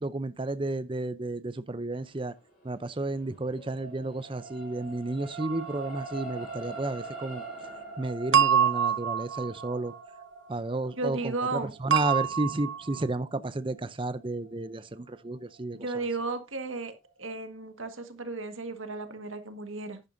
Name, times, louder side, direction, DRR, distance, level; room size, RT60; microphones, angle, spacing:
voice 1, 0.0-2.3 2.6-7.4 8.0-9.9 10.5-15.8, right 2 dB, 25° right, 0.5 m, -32 dB
sound 1, 3.0-15.5 16.0-16.2, right 3 dB, 40° left, 4.6 m, -44 dB
sound 2, 5.4-5.9 8.3-10.0 11.9-13.0, right 8 dB, 65° right, 0.7 m, -26 dB
voice 2, 11.0-11.7 15.7-16.9 17.2-20.0, right 3 dB, 80° right, 1.7 m, -34 dB
11.0 x 10.5 x 2.6 m
head